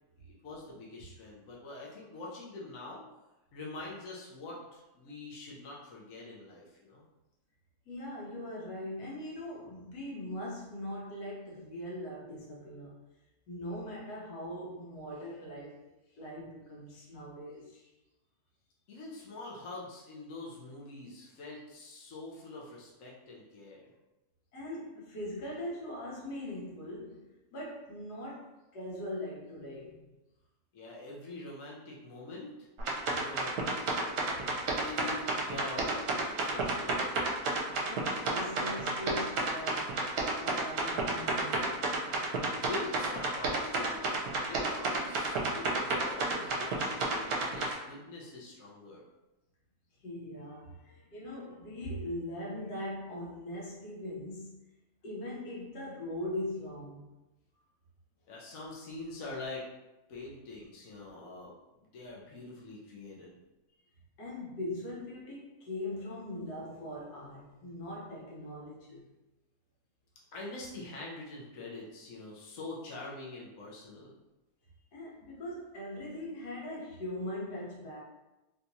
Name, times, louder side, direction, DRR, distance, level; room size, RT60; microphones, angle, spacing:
voice 1, 0.2-3.0 3.5-7.0 18.9-23.9 30.7-32.7 33.2-33.7 34.6-37.3 42.6-49.0 58.3-59.6 60.1-61.5 61.9-63.3 63.7-63.8 70.3-74.1, left 2 dB, 65° left, -4 dB, 1.1 m, -44 dB
voice 2, 7.9-12.9 13.5-15.8 16.2-17.9 24.5-30.0 37.8-40.0 40.4-41.8 50.0-54.5 55.0-57.1 64.2-69.0 74.9-78.0, left 1 dB, 85° left, -5 dB, 1.5 m, -41 dB
sound 1, 32.8-47.7, right 3 dB, 75° right, 1.1 m, -31 dB
3.4 x 2.9 x 2.6 m, 1.0 s
omnidirectional pair, 1.7 m